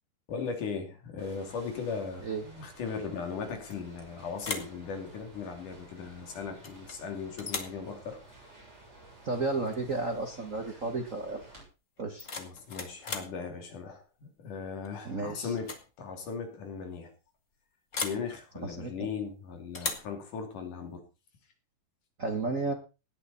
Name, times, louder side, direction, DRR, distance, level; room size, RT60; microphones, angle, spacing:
voice 1, 0.3-8.2 12.4-15.7 16.0-17.1 18.0-21.0, left 5 dB, 65° left, 4 dB, 4.2 m, -38 dB
sound 1, 1.2-11.6, right 2 dB, 20° right, 7.6 m, -53 dB
sound 2, 3.7-4.0 4.4-4.8 6.6-7.0 7.4-7.8 9.7-9.8 10.2-10.5 12.0-13.4 14.8-15.1 15.5-15.9 16.1-16.2 17.9-18.3 19.7-20.1, left 4 dB, 35° left, 1.4 m, -37 dB
voice 2, 9.2-11.4 12.0-12.3 15.0-15.5 18.6-18.9 22.2-22.7, right 3 dB, 60° right, 4 dB, 0.8 m, -32 dB
17.5 x 10.0 x 4.1 m, 0.31 s
omnidirectional pair, 3.9 m